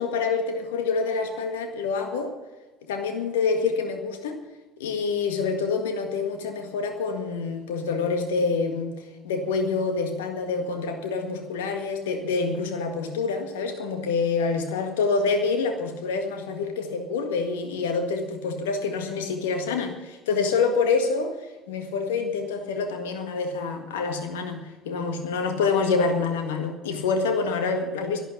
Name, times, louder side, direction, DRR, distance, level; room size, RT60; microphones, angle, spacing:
voice 1, 0.0-2.3 2.9-4.4 4.8-8.9 9.2-21.3 21.7-28.2, left 4 dB, 75° left, 5 dB, 1.7 m, -26 dB
11.5 x 10.5 x 8.4 m, 1.2 s
hypercardioid pair, 60°, 0 cm